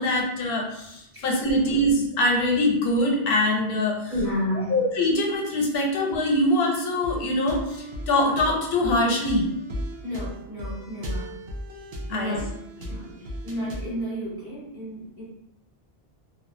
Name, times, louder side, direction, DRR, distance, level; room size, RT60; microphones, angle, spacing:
voice 1, 0.0-4.1 4.7-9.5 12.1-12.4 12.8-13.0, left 1 dB, 90° left, 0 dB, 0.8 m, -23 dB
voice 2, 4.1-4.8 10.0-11.4 12.1-12.5 12.8-15.2, equal, 20° right, -10 dB, 1.2 m, -31 dB
sound 1, 7.0-14.0, equal, 75° right, 0.8 m, -36 dB
2.3 x 2.3 x 2.5 m, 0.81 s
omnidirectional pair, 1.0 m